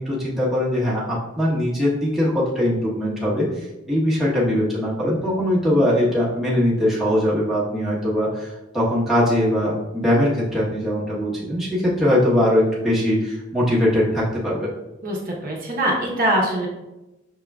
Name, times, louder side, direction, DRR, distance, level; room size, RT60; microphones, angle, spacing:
voice 1, 0.0-14.7, left 1 dB, ahead, -8 dB, 1.1 m, -21 dB
voice 2, 15.0-16.7, right 1 dB, 45° right, -3 dB, 0.9 m, -23 dB
6.0 x 3.6 x 2.3 m, 0.95 s
head